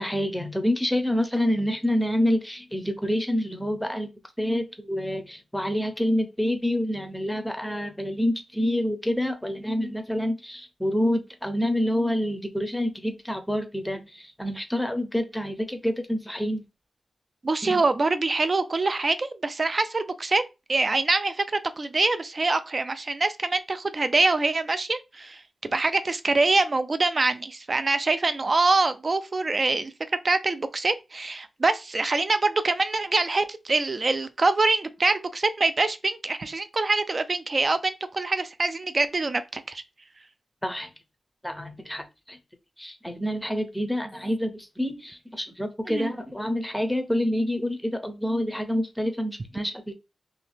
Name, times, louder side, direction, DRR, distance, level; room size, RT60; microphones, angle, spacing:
voice 1, 0.0-4.1 4.4-16.6 17.6-17.8 40.6-40.9 41.4-42.4 42.8-49.9, equal, 5° left, 0.6 m, -27 dB
voice 2, 17.4-20.4 20.7-29.9 30.2-39.8 45.9-46.1, right 3 dB, 35° right, 0.4 m, -25 dB
2.8 x 2.7 x 3.3 m
wide cardioid pair, 120°, 0 cm